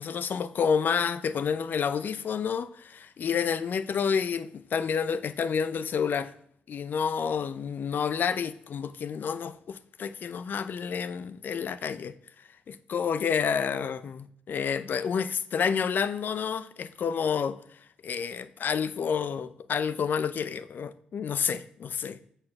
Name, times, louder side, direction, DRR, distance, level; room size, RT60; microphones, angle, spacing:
voice 1, 0.0-6.3 6.7-12.1 12.7-22.2, left 6 dB, 55° left, 0.5 m, -29 dB
8.5 x 4.3 x 5.8 m
hypercardioid pair, 50°, 4 cm